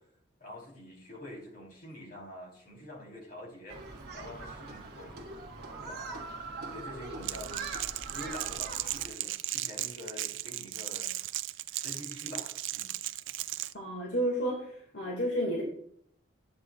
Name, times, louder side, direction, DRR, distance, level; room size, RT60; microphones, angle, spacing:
voice 1, 0.4-5.5 5.8-7.7 8.1-11.1 11.7-13.0, left 1 dB, 50° left, -2 dB, 4.0 m, -46 dB
Human group actions, 3.7-9.1, right 3 dB, 55° right, 1.7 m, -42 dB
Crackle, 7.2-13.7, right 14 dB, 80° right, 0.4 m, -36 dB
voice 2, 13.7-15.6, equal, 70° left, -2 dB, 2.2 m, -31 dB
13.5 x 8.7 x 2.5 m, 0.66 s
head